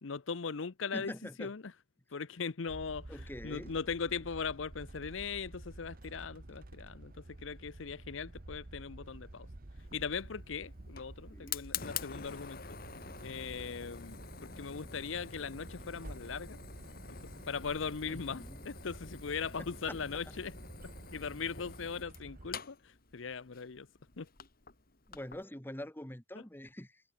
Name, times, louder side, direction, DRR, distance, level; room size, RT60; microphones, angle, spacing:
voice 1, 0.0-1.1 1.4-1.7 2.1-9.5 9.9-12.8 13.2-16.6 17.1-17.2 17.5-20.5 20.8-23.9 24.2-24.3 26.3-26.4, left 5 dB, 75° left, 0.7 m, -39 dB
voice 2, 0.9-1.5 3.1-3.7 11.3-11.6 18.1-18.6 19.6-20.0 25.1-27.0, left 1 dB, 10° left, 1.9 m, -45 dB
sound 1, 2.7-22.6, right 1 dB, 50° right, 1.2 m, -50 dB
Fire, 9.8-25.4, left 7 dB, 50° left, 2.6 m, -47 dB
head